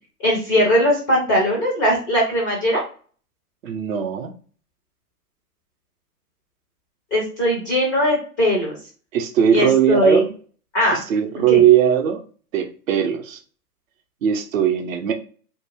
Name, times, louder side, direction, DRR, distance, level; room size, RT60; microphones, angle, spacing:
voice 1, 0.2-2.8 7.1-8.7 9.5-10.2 10.7-11.0 11.5-11.6, equal, 15° left, 0.4 m, -19 dB
voice 2, 3.6-4.3 9.1-10.3 10.9-12.2 12.5-13.4 14.2-15.1, right 9 dB, 55° right, 0.6 m, -19 dB
2.5 x 2.1 x 3.2 m
hypercardioid pair, 120°, 48 cm